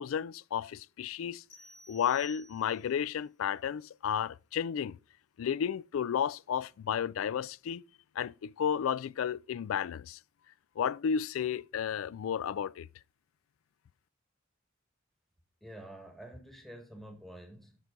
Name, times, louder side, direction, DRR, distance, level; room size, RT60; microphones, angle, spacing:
voice 1, 0.0-1.4 1.9-5.0 5.4-7.8 8.2-10.2 10.8-12.9, left 8 dB, 90° left, 0.3 m, -32 dB
sound 1, 1.5-3.0, equal, 65° left, 3.6 m, -54 dB
voice 2, 15.6-17.8, right 1 dB, ahead, 1.4 m, -48 dB
9.7 x 5.9 x 3.8 m
head